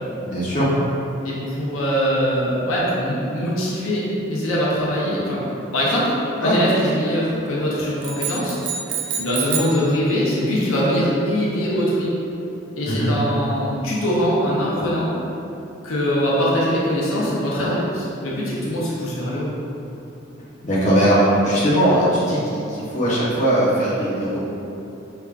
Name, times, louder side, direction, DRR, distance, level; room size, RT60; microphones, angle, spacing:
voice 1, 0.2-0.7 6.4-6.6 12.8-13.1 20.6-24.4, right 1 dB, 35° left, -9 dB, 0.9 m, -19 dB
voice 2, 1.2-5.4 5.7-6.1 6.4-8.6 9.2-12.1 12.8-15.1 15.8-19.6, equal, 85° left, -6 dB, 0.8 m, -22 dB
sound 1, 8.0-9.8, right 7 dB, 65° right, 0.4 m, -27 dB
4.8 x 3.5 x 2.4 m, 2.8 s
head